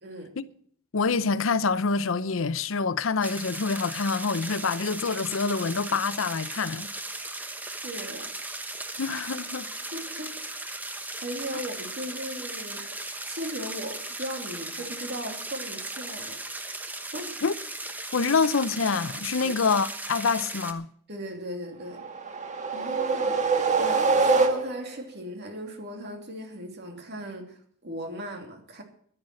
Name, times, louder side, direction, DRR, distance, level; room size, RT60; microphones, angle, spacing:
voice 1, 0.0-0.4 7.7-8.3 9.9-10.4 11.2-13.0 13.3-16.6 17.1-17.4 19.4-19.5 21.1-22.1 22.7-28.8, equal, 55° right, 2.9 m, -37 dB
voice 2, 0.9-6.9 9.0-9.7 17.4-17.5 18.1-20.9, left 4 dB, 80° left, 0.7 m, -26 dB
sound 1, 3.2-20.7, right 2 dB, 10° right, 1.1 m, -37 dB
sound 2, 21.9-25.0, right 4 dB, 35° right, 1.6 m, -24 dB
11.0 x 10.5 x 7.7 m
head